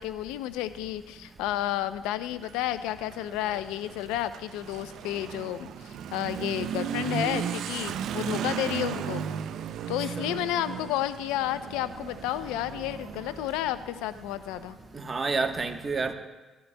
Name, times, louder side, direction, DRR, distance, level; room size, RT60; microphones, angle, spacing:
voice 1, 0.0-9.3 9.9-14.8, left 13 dB, 85° left, 0.5 m, -31 dB
Motorcycle / Accelerating revving vroom, 2.3-14.6, right 8 dB, 70° right, 0.5 m, -36 dB
voice 2, 14.9-16.1, right 4 dB, 35° right, 1.1 m, -29 dB
18.5 x 12.5 x 2.2 m
supercardioid pair, 65°, 0 cm